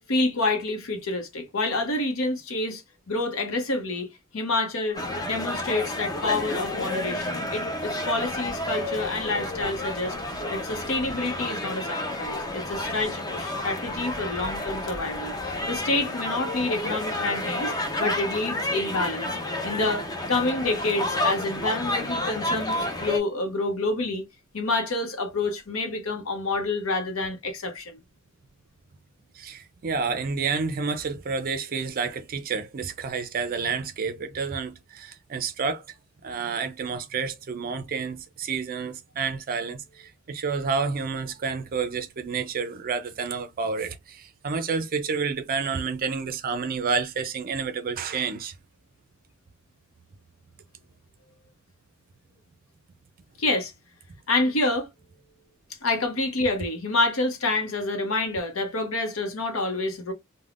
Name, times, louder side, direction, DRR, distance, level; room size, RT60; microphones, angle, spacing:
voice 1, 0.1-2.8 3.1-10.1 10.5-17.7 18.0-19.3 19.6-24.2 24.5-28.0 53.4-53.7 54.3-54.9 55.8-60.1, left 2 dB, 70° left, 0.8 m, -28 dB
sound 1, 4.9-23.2, left 1 dB, 20° left, 0.6 m, -30 dB
voice 2, 29.3-35.9 36.2-48.5, right 5 dB, 45° right, 0.4 m, -29 dB
3.4 x 2.1 x 2.4 m
head